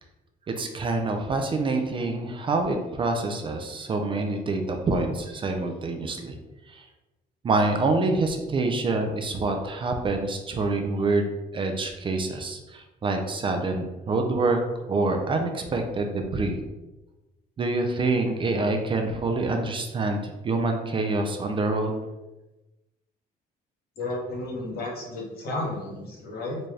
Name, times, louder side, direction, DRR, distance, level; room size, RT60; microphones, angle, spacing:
voice 1, 0.5-6.4 6.7-6.8 7.4-16.6 17.6-22.0, right 3 dB, 30° right, 4 dB, 0.4 m, -26 dB
voice 2, 24.0-26.6, left 2 dB, 65° left, -3 dB, 1.2 m, -32 dB
4.0 x 2.3 x 3.2 m, 1.1 s
cardioid pair, 110°, 17 cm